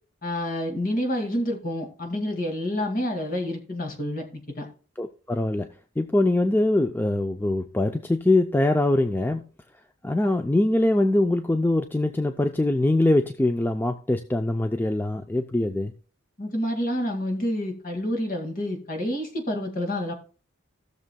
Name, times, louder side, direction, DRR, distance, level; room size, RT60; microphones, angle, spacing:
voice 1, 0.2-4.7 16.4-20.1, left 1 dB, 45° left, 3 dB, 2.0 m, -28 dB
voice 2, 5.0-5.7 6.0-9.4 10.0-15.9, left 2 dB, 10° left, 6 dB, 0.4 m, -23 dB
16.5 x 6.6 x 2.2 m, 0.38 s
head